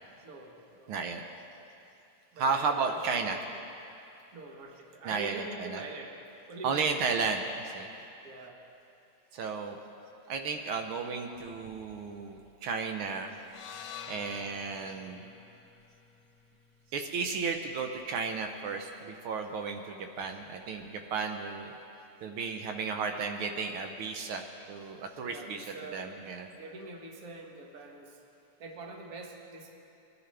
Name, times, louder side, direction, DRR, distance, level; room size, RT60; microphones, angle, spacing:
voice 1, 0.2-0.9 2.3-3.4 4.3-6.2 6.5-6.9 8.2-8.6 25.2-28.2 28.6-29.7, right 2 dB, 45° right, 1 dB, 1.5 m, -45 dB
voice 2, 0.9-1.2 2.4-3.4 5.0-5.8 6.6-7.9 9.3-9.8 10.3-13.3 14.1-15.2 16.9-21.7 22.2-26.5, right 5 dB, 80° right, 4 dB, 1.6 m, -33 dB
sound 1, 13.4-17.6, left 8 dB, 85° left, 1.6 m, -48 dB
22.0 x 11.0 x 3.4 m, 2.7 s
omnidirectional pair, 2.3 m